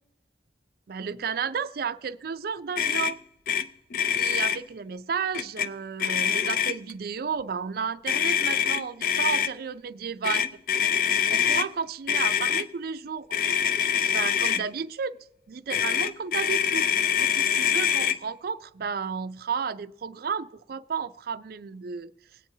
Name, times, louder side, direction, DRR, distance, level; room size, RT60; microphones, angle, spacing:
voice 1, 0.9-3.2 4.1-10.4 11.3-13.3 14.1-15.2 15.5-16.9 17.2-22.1, right 6 dB, 55° right, 0.4 m, -32 dB
Motor vehicle (road), 2.8-3.1 3.5-3.6 3.9-4.6 5.3-5.7 6.0-6.9 8.1-9.5 10.2-11.7 12.1-12.6 13.3-14.6 15.7-18.2, left 8 dB, 50° left, 0.5 m, -24 dB
20.5 x 9.0 x 2.7 m
head